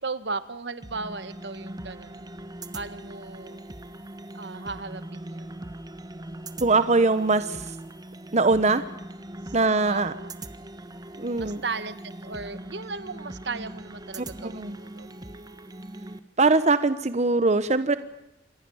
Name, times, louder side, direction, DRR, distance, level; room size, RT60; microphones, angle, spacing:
voice 1, 0.0-2.2 2.7-3.6 4.3-5.6 9.4-9.5 9.9-10.3 11.4-15.1, right 4 dB, 70° right, 13 dB, 1.6 m, -36 dB
sound 1, 0.8-16.2, right 1 dB, 25° right, 1.4 m, -41 dB
voice 2, 6.6-7.8 8.3-8.8 9.5-10.1 11.2-11.6 14.4-14.7 16.4-18.0, right 3 dB, 40° right, 12 dB, 1.0 m, -22 dB
27.0 x 20.5 x 7.1 m, 0.90 s
head